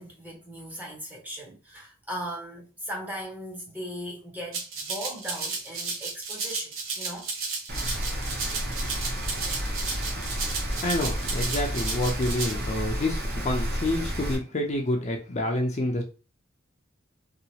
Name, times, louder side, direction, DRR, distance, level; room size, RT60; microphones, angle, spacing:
voice 1, 0.0-7.3, equal, 10° right, 0.8 m, -38 dB
Rattle (instrument), 4.5-12.5, right 4 dB, 85° right, 0.9 m, -33 dB
Rain, 7.7-14.4, equal, 50° right, 0.9 m, -31 dB
voice 2, 10.8-16.0, left 1 dB, 35° left, 0.5 m, -28 dB
2.8 x 2.4 x 2.8 m
head